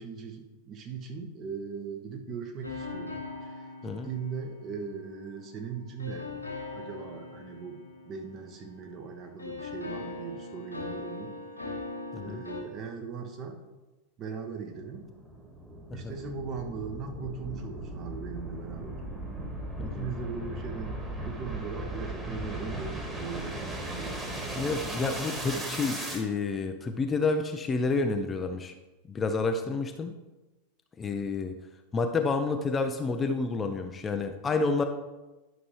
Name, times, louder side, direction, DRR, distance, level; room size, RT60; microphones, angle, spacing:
voice 1, 0.0-11.4 12.2-13.6 14.2-15.1 15.9-19.0 19.8-24.2, right 5 dB, 35° right, 4 dB, 1.1 m, -39 dB
sound 1, 2.6-5.3 6.0-9.0 9.4-12.6, left 3 dB, 85° left, 1.8 m, -40 dB
voice 2, 12.1-12.4 15.9-16.1 19.8-20.1 24.5-28.7 29.1-30.1 31.0-31.5 31.9-34.8, left 3 dB, 20° left, 6 dB, 0.6 m, -29 dB
sound 2, 14.7-26.2, right 1 dB, 10° right, 1.7 m, -37 dB
11.0 x 6.0 x 3.2 m, 1.1 s
figure-of-eight pair, 90°, 0 cm